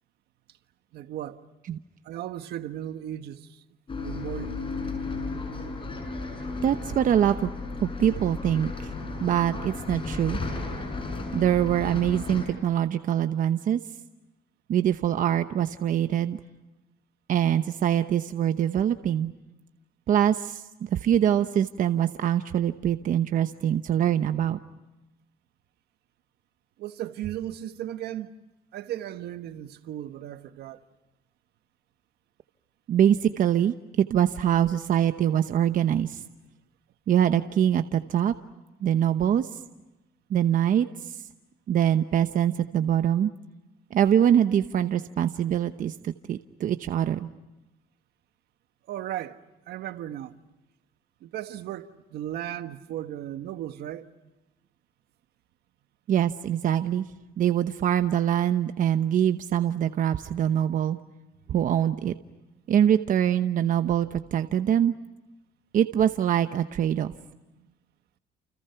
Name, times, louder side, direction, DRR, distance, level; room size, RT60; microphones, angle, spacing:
voice 1, 0.9-1.4 2.0-3.6 4.0-4.6 26.8-28.4 28.7-30.8 48.9-49.4 49.7-50.4 51.2-54.1 67.6-67.7, right 12 dB, 75° right, 1.4 m, -36 dB
Bus, 3.9-12.5, left 3 dB, 30° left, 6.8 m, -34 dB
voice 2, 6.6-7.5 7.8-8.9 9.2-10.4 11.3-13.8 14.7-16.4 17.3-19.3 20.1-24.6 32.9-36.2 37.1-38.3 38.8-39.5 40.3-41.2 41.7-43.3 43.9-47.3 56.1-57.1 57.4-61.0 61.5-62.2 62.7-64.9 65.7-67.1, right 10 dB, 50° right, 1.0 m, -24 dB
29.5 x 29.0 x 5.9 m
cardioid pair, 110°, 17 cm